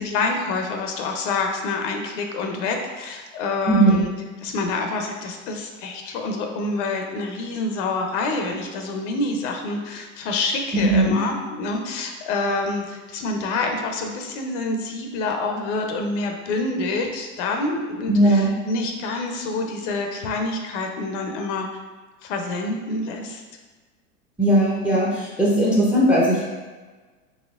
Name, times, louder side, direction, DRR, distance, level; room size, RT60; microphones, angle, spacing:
voice 1, 0.0-4.1 4.4-21.7 22.2-23.4, left 3 dB, 55° left, 3 dB, 0.6 m, -27 dB
voice 2, 3.7-4.0 10.7-11.2 18.1-18.5 24.4-26.4, right 1 dB, 5° right, -4 dB, 0.5 m, -18 dB
4.2 x 3.1 x 2.3 m, 1.3 s
hypercardioid pair, 105°, 44 cm